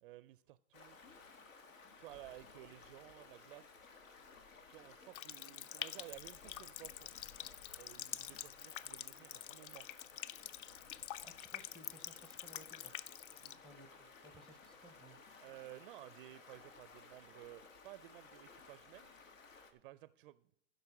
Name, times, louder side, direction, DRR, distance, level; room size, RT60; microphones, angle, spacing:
voice 1, 0.0-1.0 1.7-3.7 4.7-7.1 7.7-9.9 13.4-13.6 15.4-19.1 19.7-20.4, right 16 dB, 45° right, 16 dB, 0.4 m, -55 dB
Stream, 0.7-19.7, left 4 dB, 85° left, 1.7 m, -58 dB
Water tap faucet, 5.1-13.5, left 12 dB, 45° left, 0.4 m, -47 dB
voice 2, 11.2-13.0 13.6-15.5, right 1 dB, ahead, 10 dB, 0.7 m, -60 dB
15.0 x 5.3 x 5.9 m, 0.70 s
hypercardioid pair, 135°, 38 cm